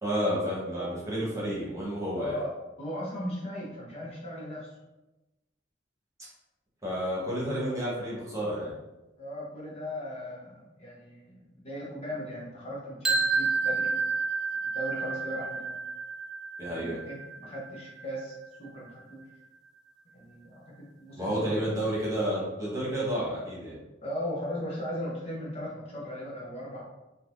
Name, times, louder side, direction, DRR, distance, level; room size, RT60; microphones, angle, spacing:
voice 1, 0.0-2.4 6.8-8.7 16.6-17.0 21.2-23.8, equal, 15° right, -6 dB, 1.1 m, -30 dB
voice 2, 2.1-2.5 2.8-4.7 9.2-13.9 14.7-15.8 16.7-19.2 20.1-20.5 21.0-21.3 21.5-21.6 24.0-26.8, equal, 35° left, -5 dB, 0.7 m, -37 dB
sound 1, 13.0-19.0, right 4 dB, ahead, 0.5 m, -31 dB
3.6 x 2.8 x 2.5 m, 1.0 s
head